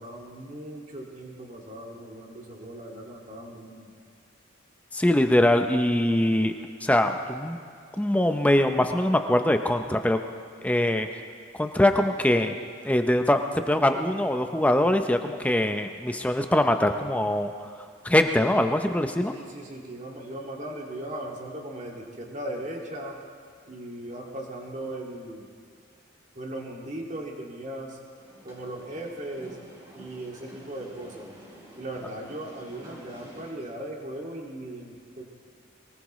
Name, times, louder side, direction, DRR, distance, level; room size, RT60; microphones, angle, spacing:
voice 1, 0.0-3.9 19.3-23.2 23.7-25.4 26.4-28.0 28.4-29.6 29.9-31.3 31.8-35.3, right 1 dB, 40° right, -1 dB, 2.2 m, -38 dB
voice 2, 4.9-6.5 6.8-7.6 8.0-10.2 10.6-11.2 11.6-12.6 12.8-17.7 18.0-19.3, left 1 dB, 5° left, 6 dB, 0.6 m, -23 dB
sound 1, 28.2-33.5, equal, 20° right, 3.9 m, -49 dB
22.5 x 19.5 x 3.1 m, 2.3 s
head